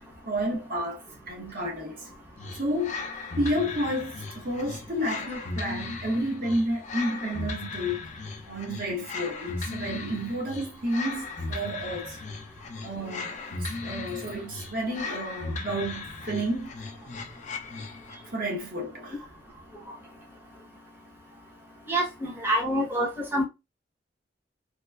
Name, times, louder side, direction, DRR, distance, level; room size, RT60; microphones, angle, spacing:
voice 1, 0.2-2.1 2.5-3.0 3.4-8.1 8.5-12.2 12.8-16.9 18.1-19.2 21.9-22.0, equal, 55° right, 1.0 m, -31 dB
sound 1, 2.4-18.3, left 3 dB, 40° left, 0.4 m, -37 dB
voice 2, 21.9-23.4, right 1 dB, 10° right, 0.8 m, -26 dB
3.1 x 3.0 x 2.3 m
head